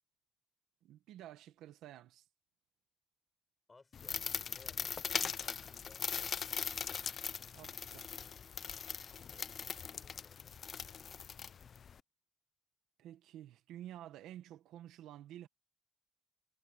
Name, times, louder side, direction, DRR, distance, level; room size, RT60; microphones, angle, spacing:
voice 1, 0.8-2.3 7.5-8.1 13.0-15.5, right 12 dB, 90° right, 1.6 m, -51 dB
voice 2, 3.7-6.8 9.3-10.9, left 3 dB, 25° left, 4.7 m, -64 dB
sound 1, 3.9-12.0, left 7 dB, 50° left, 0.4 m, -40 dB
cardioid pair, 90°, 0 cm